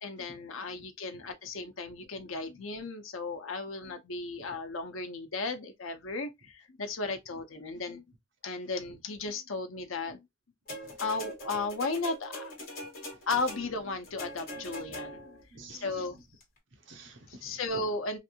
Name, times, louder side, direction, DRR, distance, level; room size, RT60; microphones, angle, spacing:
voice 1, 0.0-8.0 8.4-10.2 11.0-12.5 13.3-15.4 15.7-16.2 17.3-18.2, left 3 dB, 80° left, 0.7 m, -35 dB
sound 1, 10.7-15.4 16.4-16.5, equal, 45° left, 1.5 m, -42 dB
voice 2, 10.7-11.0 12.8-13.4 14.9-15.2 15.5-16.2 16.7-17.9, right 1 dB, 65° right, 0.9 m, -51 dB
3.3 x 2.6 x 2.7 m
head